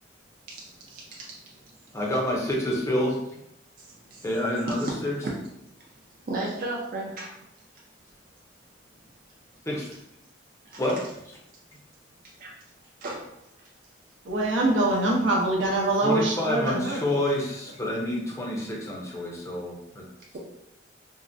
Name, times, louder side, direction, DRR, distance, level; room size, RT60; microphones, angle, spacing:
voice 1, 0.9-1.3 3.8-4.2 4.7-4.9 5.2-5.3 6.3-7.4 10.7-10.8 12.4-12.5 13.0-13.3, right 2 dB, 45° right, -3 dB, 0.4 m, -34 dB
voice 2, 1.9-3.2 4.2-5.1 9.7-9.9 10.8-11.0 16.0-20.0, left 1 dB, 15° left, -3 dB, 0.5 m, -28 dB
voice 3, 14.2-17.2, right 2 dB, 80° right, -1 dB, 0.7 m, -24 dB
3.5 x 2.0 x 2.5 m, 0.82 s
head